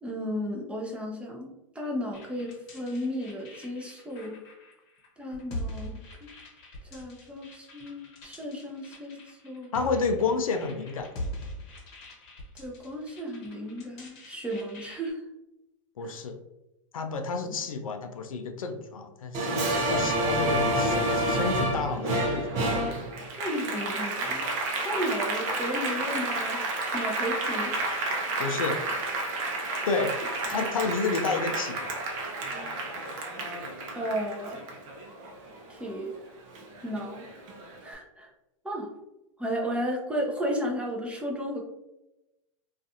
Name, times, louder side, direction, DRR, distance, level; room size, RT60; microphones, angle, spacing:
voice 1, 0.0-4.4 5.2-6.0 6.8-9.7 12.6-15.2 23.3-24.5 24.8-26.6 26.9-27.8 30.5-30.7 33.9-34.6 35.7-36.1 36.8-37.3 37.8-38.3 38.6-38.9 39.4-41.6, equal, 5° right, -1 dB, 0.6 m, -34 dB
sound 1, 2.1-15.1, left 1 dB, 55° left, 0.9 m, -43 dB
voice 2, 9.7-11.1 16.0-16.4 16.9-22.6 28.4-28.8 29.9-30.2 30.5-31.9, left 4 dB, 85° left, 5 dB, 0.4 m, -30 dB
Applause, 19.3-36.2 36.6-37.7, right 1 dB, 45° right, 0.7 m, -30 dB
2.4 x 2.4 x 2.7 m, 0.93 s
hypercardioid pair, 100°, 17 cm